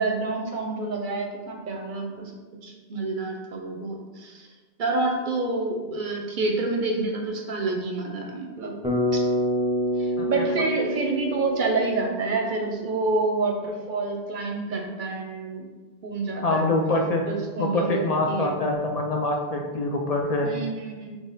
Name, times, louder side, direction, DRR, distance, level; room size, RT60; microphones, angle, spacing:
voice 1, 0.0-4.5 4.8-8.8 9.1-9.2 10.0-15.7 16.0-16.7 17.3-18.0 18.3-18.6 20.4-21.2, right 3 dB, 60° right, 1 dB, 0.6 m, -28 dB
Bass guitar, 8.8-13.0, equal, 5° right, 0.7 m, -27 dB
voice 2, 16.4-17.2 17.6-20.5, left 2 dB, 55° left, 1 dB, 0.4 m, -25 dB
3.9 x 3.0 x 3.9 m, 1.3 s
omnidirectional pair, 1.0 m